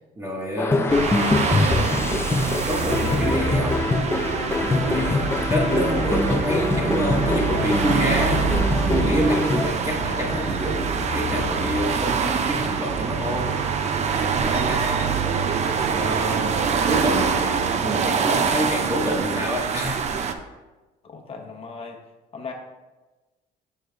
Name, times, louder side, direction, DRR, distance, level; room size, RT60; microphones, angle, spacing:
voice 1, 0.2-2.3 2.7-3.9 4.6-8.6 8.9-13.6 14.2-15.3 15.9-17.4 17.8-20.1, equal, 20° right, -3 dB, 1.1 m, -27 dB
sound 1, 0.6-9.7, left 3 dB, 15° left, 0.4 m, -24 dB
sound 2, 0.9-20.3, right 6 dB, 40° right, 0.5 m, -25 dB
sound 3, 1.7-11.9, left 3 dB, 50° left, 1.4 m, -32 dB
voice 2, 21.0-22.0 22.3-22.5, left 5 dB, 35° left, 2 dB, 1.0 m, -37 dB
6.7 x 4.6 x 3.3 m, 1.2 s
cardioid pair, 110°, 17 cm